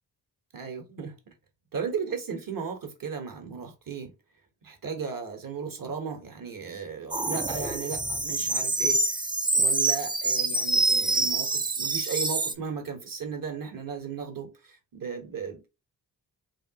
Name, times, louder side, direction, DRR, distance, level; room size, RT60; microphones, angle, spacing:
voice 1, 0.5-1.3 1.7-4.1 4.6-9.2 9.5-15.7, right 6 dB, 50° right, 1.2 m, -36 dB
sound 1, 7.1-12.5, right 2 dB, 10° right, 0.5 m, -26 dB
3.2 x 2.7 x 2.8 m
cardioid pair, 65°, 44 cm